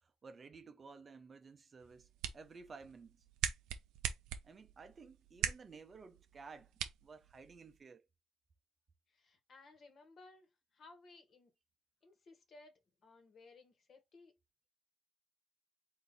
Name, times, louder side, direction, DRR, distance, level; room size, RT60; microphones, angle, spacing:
voice 1, 0.0-3.2 4.4-6.7 7.0-8.1, right 4 dB, 40° right, 0.6 m, -55 dB
sound 1, 1.8-7.8, right 10 dB, 90° right, 0.5 m, -43 dB
voice 2, 9.1-11.5 12.0-14.4, left 3 dB, 60° left, 1.5 m, -60 dB
3.8 x 2.7 x 4.0 m
supercardioid pair, 75°, 0 cm